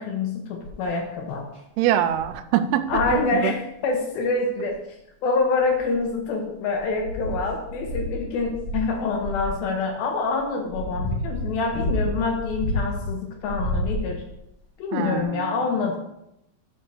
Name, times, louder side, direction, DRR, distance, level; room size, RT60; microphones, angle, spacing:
voice 1, 0.0-1.5 2.9-3.5 3.8-4.8 5.2-14.2 14.8-16.0, left 4 dB, 80° left, 2 dB, 2.7 m, -26 dB
sound 1, 0.6-0.9 1.5-1.6 2.1-2.3 2.8-3.3 4.7-4.8 5.5-6.2 6.7-9.6 10.3-13.1 13.4-14.4 15.2-15.3, equal, 40° left, 1.6 m, -30 dB
voice 2, 1.8-3.0 3.3-3.6 14.9-15.6, right 11 dB, 90° right, 9 dB, 2.5 m, -24 dB
8.3 x 4.3 x 6.6 m, 0.83 s
omnidirectional pair, 4.4 m